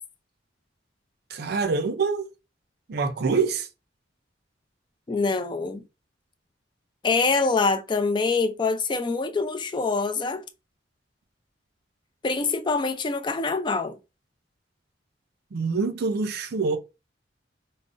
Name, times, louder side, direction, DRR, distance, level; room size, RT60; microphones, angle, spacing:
voice 1, 1.3-2.3 2.9-3.7 15.5-16.8, right 4 dB, 60° right, 0.4 m, -25 dB
voice 2, 5.1-5.8 7.0-10.4 12.2-14.0, left 4 dB, 25° left, 0.4 m, -25 dB
3.7 x 2.0 x 2.4 m
head